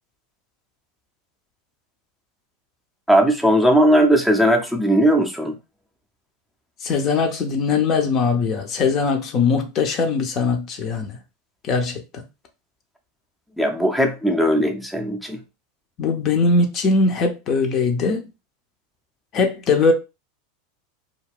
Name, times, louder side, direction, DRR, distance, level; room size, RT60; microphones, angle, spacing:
voice 1, 3.1-5.6 13.6-15.4, equal, ahead, 0.6 m, -18 dB
voice 2, 6.8-11.2 11.7-12.2 16.0-18.2 19.3-19.9, left 4 dB, 45° left, 0.6 m, -20 dB
2.4 x 2.2 x 3.5 m
hypercardioid pair, 90°, 0 cm